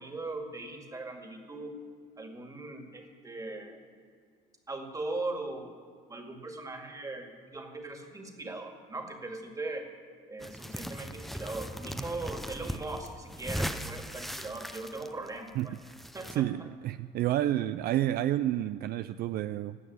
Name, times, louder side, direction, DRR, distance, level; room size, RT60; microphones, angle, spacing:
voice 1, 0.0-1.7 2.2-3.8 4.7-5.7 6.1-9.9 10.3-15.7 16.1-16.4, right 2 dB, 20° right, 3 dB, 2.0 m, -39 dB
sound 1, 10.4-16.4, equal, ahead, 0.6 m, -38 dB
voice 2, 16.3-19.8, right 13 dB, 65° right, 13 dB, 0.4 m, -30 dB
16.5 x 6.2 x 9.5 m, 2.1 s
cardioid pair, 110°, 17 cm